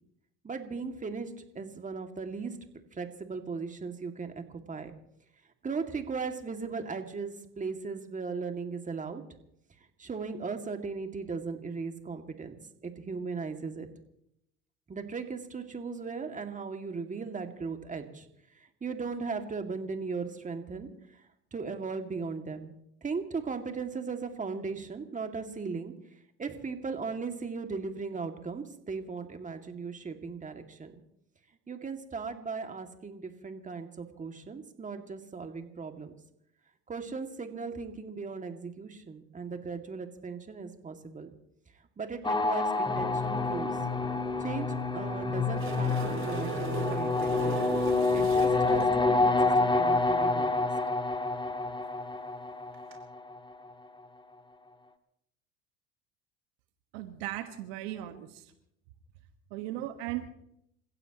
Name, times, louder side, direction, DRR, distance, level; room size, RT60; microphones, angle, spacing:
voice 1, 0.4-2.6 2.9-4.9 5.6-9.2 10.0-12.6 12.8-13.9 14.9-18.3 18.8-20.9 21.5-22.7 23.0-25.9 26.4-30.9 31.7-36.1 36.9-41.3 42.0-43.7 44.4-47.6 48.1-50.5, right 4 dB, 25° right, 6 dB, 2.4 m, -37 dB
sound 1, 42.2-53.4, left 3 dB, 15° left, 1.6 m, -28 dB
sound 2, 45.3-48.9 52.7-52.9, right 6 dB, 40° right, 5.1 m, -37 dB
voice 2, 56.9-58.5 59.5-60.3, right 14 dB, 75° right, 8 dB, 1.6 m, -37 dB
29.0 x 16.0 x 3.1 m, 0.76 s
hypercardioid pair, 75°, 32 cm